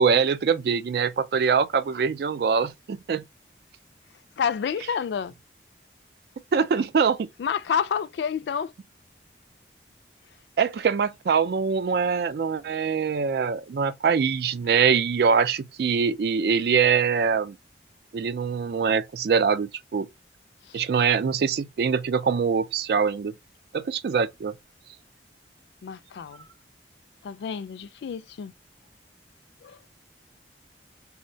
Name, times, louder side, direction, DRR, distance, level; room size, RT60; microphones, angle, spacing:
voice 1, 0.0-3.2 6.5-7.3 10.6-17.5 18.1-20.1 20.7-23.3 23.7-24.5, right 6 dB, 60° right, 0.3 m, -23 dB
voice 2, 4.4-5.3 7.4-8.7 25.8-26.4 27.2-28.5 29.6-29.8, left 7 dB, 75° left, 0.3 m, -29 dB
3.7 x 2.1 x 2.6 m
head